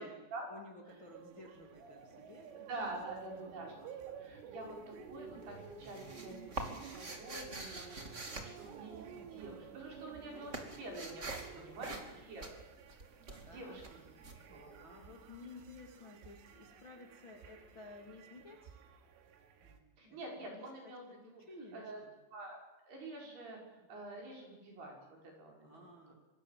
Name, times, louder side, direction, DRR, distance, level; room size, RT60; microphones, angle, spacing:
voice 1, 0.5-2.5 3.4-3.9 11.5-12.1 13.3-13.8 14.5-18.7 19.6-20.2 20.4-20.7 21.2-22.1 25.6-26.1, left 2 dB, 30° left, 1 dB, 2.8 m, -54 dB
sound 1, 0.9-19.8, right 7 dB, 75° right, 4.6 m, -53 dB
voice 2, 2.7-3.7 4.2-4.8 5.1-12.4 13.4-14.0 14.5-14.7 20.0-21.4 21.7-22.0 22.3-22.6 22.9-25.0 25.2-25.9, right 2 dB, 50° right, 0 dB, 7.7 m, -47 dB
sound 2, 4.6-5.1 5.4-9.5 9.7-15.3, right 2 dB, 25° right, 1.6 m, -45 dB
25.0 x 24.5 x 7.6 m, 1.2 s
omnidirectional pair, 5.8 m